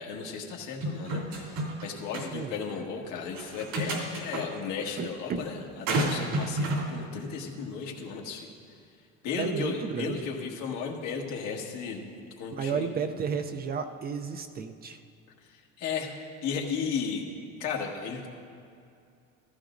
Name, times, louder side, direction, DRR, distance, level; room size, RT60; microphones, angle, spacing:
voice 1, 0.0-8.5 9.2-12.1 12.4-13.2 15.5-16.1 16.4-17.2 17.6-18.3, left 5 dB, 70° left, 0 dB, 1.7 m, -35 dB
sound 1, 0.8-1.8 2.1-2.3 3.3-4.4 5.9-6.9, right 2 dB, 80° right, 2.7 m, -30 dB
voice 2, 5.0-5.4 9.4-10.2 12.6-15.0, right 6 dB, 30° right, 7 dB, 0.5 m, -32 dB
14.5 x 14.5 x 2.6 m, 2.5 s
cardioid pair, 140°, 31 cm